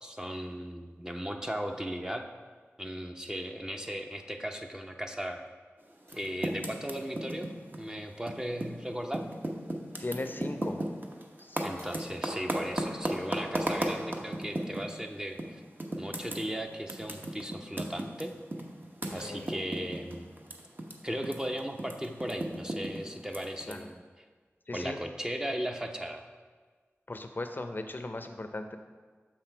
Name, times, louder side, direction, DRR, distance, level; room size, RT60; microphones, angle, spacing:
voice 1, 0.0-2.2 2.8-5.4 6.1-9.2 11.6-15.6 16.0-18.3 19.1-20.3 21.0-24.0 24.7-26.2, equal, 15° right, 4 dB, 0.6 m, -37 dB
sound 1, 3.6-3.9 4.6-4.7 6.1-6.9 8.4-8.5 10.7-10.8 11.3-11.5 11.8-12.9 17.0-17.1 17.4-17.5 18.5-18.6 19.0-19.9, equal, 70° right, 1.6 m, -56 dB
Typing, 6.0-8.8 9.1-15.0 15.4-15.5 15.8-20.9 21.2-23.7, right 1 dB, 40° right, 0.9 m, -35 dB
voice 2, 10.0-10.8 11.4-11.6 19.2-19.5 23.7-23.9 24.7-25.0 27.1-28.8, left 2 dB, 45° left, 7 dB, 0.5 m, -37 dB
6.5 x 5.9 x 4.5 m, 1.5 s
wide cardioid pair, 55°, 5 cm